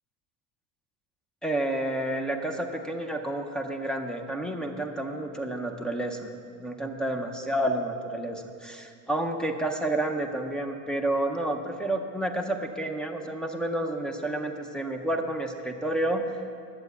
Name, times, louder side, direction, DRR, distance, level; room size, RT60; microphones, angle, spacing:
voice 1, 1.4-6.3 6.6-16.4, right 1 dB, ahead, 4 dB, 0.4 m, -30 dB
12.0 x 8.2 x 7.9 m, 2.3 s
cardioid pair, 170°, 39 cm